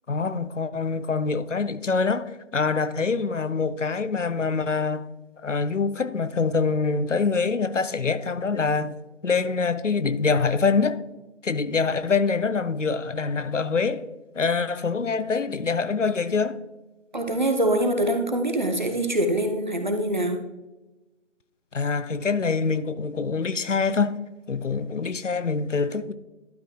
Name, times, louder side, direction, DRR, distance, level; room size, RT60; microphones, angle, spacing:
voice 1, 0.1-5.1 5.4-9.0 9.2-11.0 11.4-14.0 14.4-16.6 21.7-24.2 24.5-26.1, left 4 dB, 75° left, 0.7 m, -25 dB
voice 2, 17.1-20.4, right 1 dB, 40° right, 0.9 m, -24 dB
11.5 x 4.9 x 3.8 m
figure-of-eight pair, 165°, 37 cm